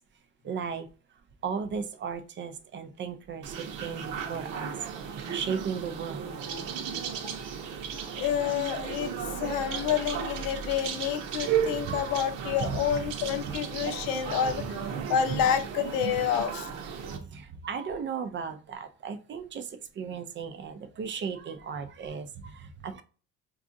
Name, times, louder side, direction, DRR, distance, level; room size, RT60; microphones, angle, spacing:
voice 1, 0.4-0.9 1.4-4.7 5.0-6.3 11.8-12.2 12.6-13.0 17.0-23.0, right 6 dB, 35° right, 0.4 m, -36 dB
sound 1, 3.4-17.2, right 7 dB, 60° right, 0.8 m, -35 dB
voice 2, 8.1-16.7, left 9 dB, 75° left, 0.7 m, -29 dB
4.7 x 2.4 x 2.6 m
cardioid pair, 125°, 34 cm